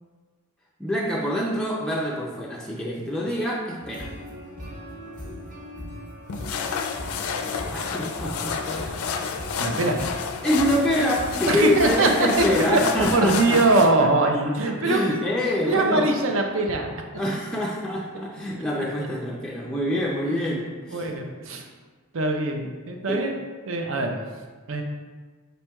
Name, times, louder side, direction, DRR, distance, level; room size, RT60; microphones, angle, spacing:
voice 1, 0.8-4.1 7.7-9.1 10.4-14.1 14.8-16.1 17.2-21.1 23.1-23.3, equal, 5° left, -5 dB, 0.4 m, -26 dB
sound 1, 3.8-13.5, equal, 35° right, 0.9 m, -39 dB
sound 2, 6.3-13.9, left 6 dB, 80° left, 0.4 m, -30 dB
voice 2, 9.6-10.0 11.5-12.8 13.1-15.2 15.7-16.9 20.9-21.6 22.1-23.4 23.7-24.2 24.7-24.8, right 2 dB, 65° right, 3 dB, 0.6 m, -22 dB
5.2 x 4.4 x 2.3 m, 1.4 s
head